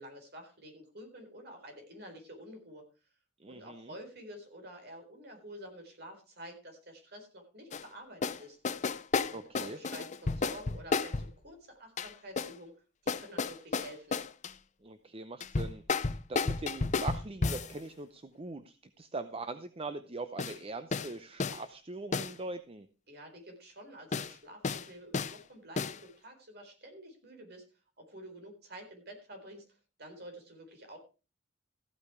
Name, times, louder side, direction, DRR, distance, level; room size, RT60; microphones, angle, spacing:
voice 1, 0.0-2.8 3.5-8.6 9.2-12.7 13.0-14.2 23.1-27.7 28.0-31.0, equal, 55° right, 4 dB, 4.1 m, -49 dB
voice 2, 3.4-3.9 9.3-9.8 14.8-22.9, right 3 dB, 30° right, 11 dB, 0.6 m, -42 dB
sound 1, 7.7-7.8 8.2-8.4 8.6-11.3 12.0-12.5 13.1-14.5 15.4-17.7 20.4-20.6 20.9-21.1 21.4-21.6 22.1-22.3 24.1-24.3 24.6-24.9 25.1-25.4 25.8-26.0, left 4 dB, 40° left, 0.6 m, -32 dB
14.5 x 8.7 x 4.8 m, 0.33 s
head